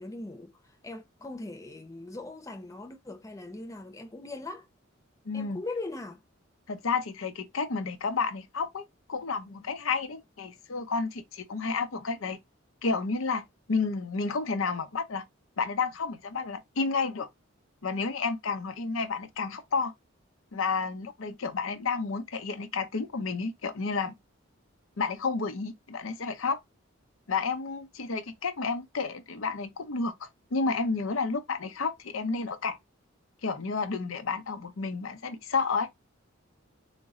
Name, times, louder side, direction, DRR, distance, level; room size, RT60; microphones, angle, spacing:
voice 1, 0.0-4.7 5.3-6.2, left 2 dB, 15° left, 0.5 m, -40 dB
voice 2, 5.3-5.6 6.7-12.4 12.8-15.2 15.6-17.3 17.8-19.9 20.5-24.1 25.0-26.6 27.3-32.8 33.4-35.9, left 4 dB, 90° left, 0.7 m, -31 dB
4.0 x 2.2 x 3.6 m
head